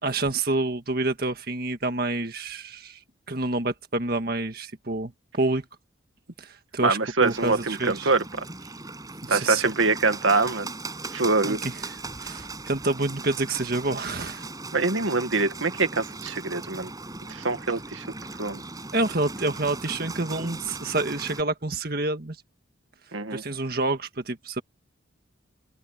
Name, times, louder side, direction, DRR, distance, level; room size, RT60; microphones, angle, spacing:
voice 1, 0.0-3.0 3.3-5.6 6.4-8.1 9.2-9.7 11.4-14.5 18.9-22.4 23.3-24.6, right 2 dB, 50° right, 1.8 m, -28 dB
voice 2, 6.8-8.4 9.3-10.7 11.1-11.6 14.7-16.9 17.3-18.0 18.4-18.6 23.1-23.4, right 3 dB, 80° right, 1.8 m, -24 dB
Bird, 7.2-21.4, right 3 dB, 20° right, 7.6 m, -38 dB
open air
head